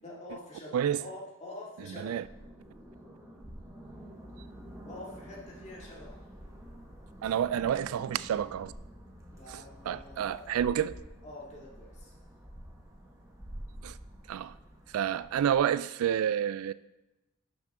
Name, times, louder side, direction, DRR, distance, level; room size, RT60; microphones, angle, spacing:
voice 1, 0.0-2.3 4.8-6.1 9.3-10.5 11.2-12.1, left 2 dB, 35° left, 2.4 m, -46 dB
voice 2, 1.9-2.2 7.2-8.7 9.5-11.0 13.8-14.0 14.3-14.5 14.9-16.7, right 9 dB, 80° right, 0.3 m, -29 dB
sound 1, 2.2-15.6, equal, 15° right, 1.6 m, -48 dB
11.5 x 6.2 x 3.7 m
head